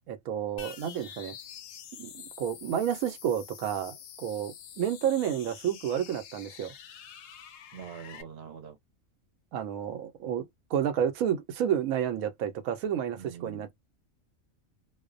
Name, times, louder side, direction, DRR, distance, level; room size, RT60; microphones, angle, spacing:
voice 1, 0.1-1.4 1.9-6.7 9.5-10.5 10.7-13.7, right 9 dB, 90° right, 1.0 m, -30 dB
sound 1, 0.6-8.2, left 9 dB, 65° left, 0.8 m, -47 dB
voice 2, 7.7-8.8 13.1-13.7, right 8 dB, 55° right, 0.9 m, -44 dB
2.5 x 2.0 x 2.4 m
omnidirectional pair, 1.4 m